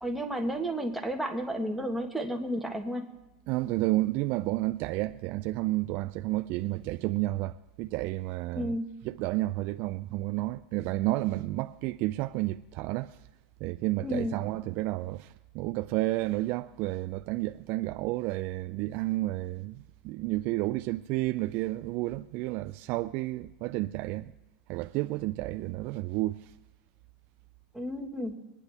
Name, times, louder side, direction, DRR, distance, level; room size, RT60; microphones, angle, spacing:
voice 1, 0.0-3.1 8.6-8.9 14.0-14.4 27.7-28.3, equal, ahead, 1.4 m, -32 dB
voice 2, 3.5-8.8 9.0-13.2 13.6-24.3 24.7-26.5, right 18 dB, 45° right, 0.3 m, -31 dB
22.5 x 10.0 x 3.4 m
supercardioid pair, 140°, 5 cm